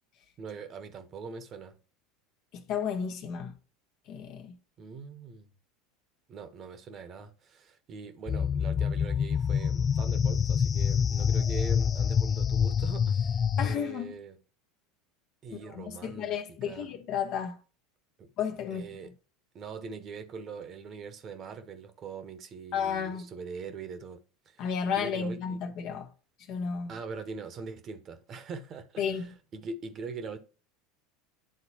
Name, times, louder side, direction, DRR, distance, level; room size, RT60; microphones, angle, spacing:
voice 1, 0.4-1.8 4.8-5.5 6.3-14.4 15.4-16.4 16.6-16.9 18.2-18.3 18.7-19.1 19.5-24.7 24.9-25.6 26.9-30.4, right 4 dB, 40° right, 1.0 m, -42 dB
voice 2, 2.5-3.5 4.1-4.5 13.6-14.2 15.6-17.6 18.4-18.8 22.7-23.3 24.6-26.1 26.5-26.9 29.0-29.3, left 7 dB, 55° left, 1.1 m, -32 dB
sound 1, 8.3-13.8, left 7 dB, 30° left, 0.3 m, -26 dB
10.0 x 3.9 x 2.9 m
hypercardioid pair, 80°, 0 cm